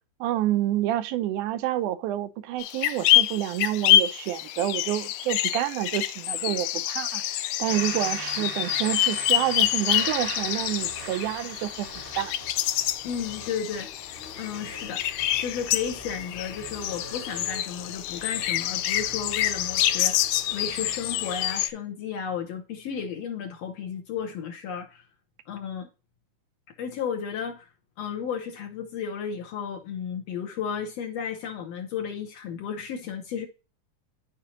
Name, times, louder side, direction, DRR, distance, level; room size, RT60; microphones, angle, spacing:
voice 1, 0.2-11.9 12.2-12.3, right 13 dB, 80° right, 2.0 m, -28 dB
sound 1, 2.6-21.7, left 13 dB, 90° left, 2.1 m, -27 dB
sound 2, 7.7-13.5, right 3 dB, 35° right, 0.8 m, -40 dB
sound 3, 9.9-21.7, equal, 35° left, 0.9 m, -46 dB
voice 2, 13.0-25.1 25.5-25.9 26.8-27.7 28.0-33.5, left 7 dB, 65° left, 1.8 m, -33 dB
13.0 x 5.0 x 2.8 m
omnidirectional pair, 3.6 m